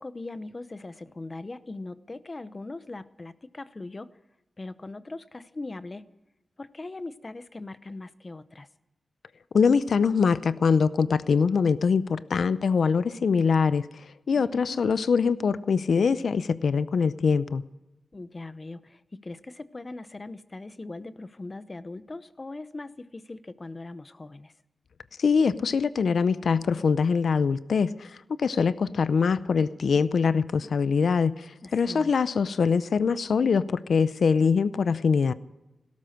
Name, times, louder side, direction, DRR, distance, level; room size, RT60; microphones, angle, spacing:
voice 1, 0.0-4.1 4.6-6.1 6.6-8.7 14.4-14.8 18.1-24.5 31.6-32.1, left 2 dB, 30° left, 14 dB, 0.8 m, -40 dB
voice 2, 9.5-13.9 14.3-17.6 25.2-35.3, left 5 dB, 80° left, 15 dB, 0.5 m, -23 dB
17.5 x 12.5 x 6.5 m, 1.0 s
wide cardioid pair, 115°, 0 cm